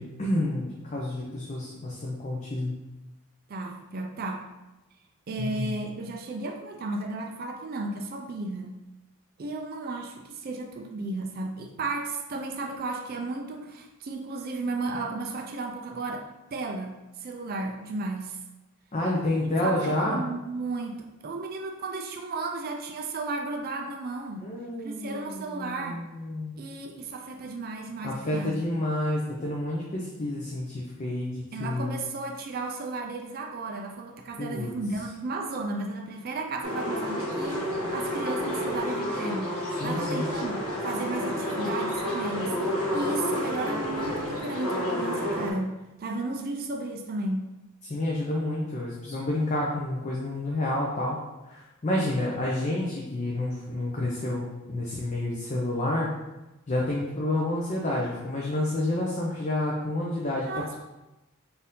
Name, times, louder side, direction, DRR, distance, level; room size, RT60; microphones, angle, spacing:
voice 1, 0.0-2.8 5.4-5.8 18.9-20.2 24.4-26.6 28.0-32.0 34.4-34.7 39.8-40.3 47.8-51.2 51.5-56.1 56.7-60.7, left 1 dB, 30° left, -4 dB, 0.5 m, -29 dB
voice 2, 3.5-4.5 5.3-8.8 9.4-16.3 16.5-18.4 19.4-24.5 24.8-26.0 26.6-28.7 31.5-47.4 60.4-60.7, right 2 dB, 40° right, 3 dB, 0.4 m, -34 dB
sound 1, 36.6-45.5, left 1 dB, 75° left, 1.4 m, -30 dB
4.3 x 2.6 x 3.7 m, 1.0 s
head